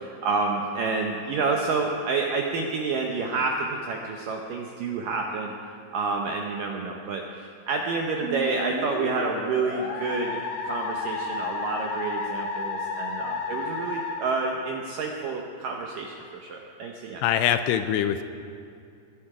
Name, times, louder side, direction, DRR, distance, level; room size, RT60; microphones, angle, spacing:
voice 1, 0.0-5.5 5.9-17.2, right 4 dB, 80° right, 1 dB, 1.9 m, -29 dB
Musical instrument, 8.2-15.1, left 3 dB, 65° left, 3.9 m, -32 dB
voice 2, 17.2-18.2, left 10 dB, 85° left, 10 dB, 2.6 m, -23 dB
22.0 x 11.5 x 4.9 m, 2.5 s
omnidirectional pair, 5.1 m